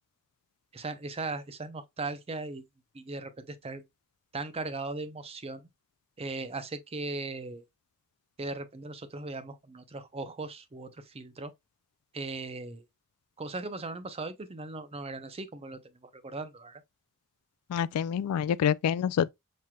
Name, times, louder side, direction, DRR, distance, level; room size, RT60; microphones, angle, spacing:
voice 1, 0.7-2.6 2.9-3.8 4.3-5.7 6.2-7.6 8.4-11.5 12.1-12.8 13.4-16.8, right 3 dB, 25° right, 0.6 m, -38 dB
voice 2, 17.7-19.3, left 8 dB, 85° left, 0.3 m, -27 dB
5.8 x 3.2 x 2.2 m
head